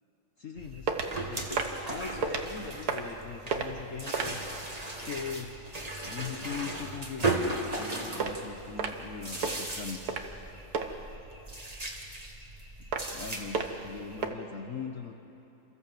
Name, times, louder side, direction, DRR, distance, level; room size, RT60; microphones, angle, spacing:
voice 1, 0.4-1.5 1.9-4.4 5.0-5.6 6.0-10.0 13.0-15.1, left 6 dB, 55° left, 4 dB, 1.1 m, -40 dB
sound 1, 0.6-14.3, right 2 dB, 20° right, 1.7 m, -37 dB
sound 2, 0.9-1.2 1.5-1.8 2.2-2.5 2.8-3.2 3.5-3.7 4.1-4.4 8.2-8.3 8.8-9.1 9.4-9.6 10.1-10.4 10.7-10.9 12.9-13.2 13.5-13.8 14.2-14.3, right 5 dB, 60° right, 1.7 m, -31 dB
29.5 x 14.5 x 7.7 m, 2.9 s
omnidirectional pair, 2.0 m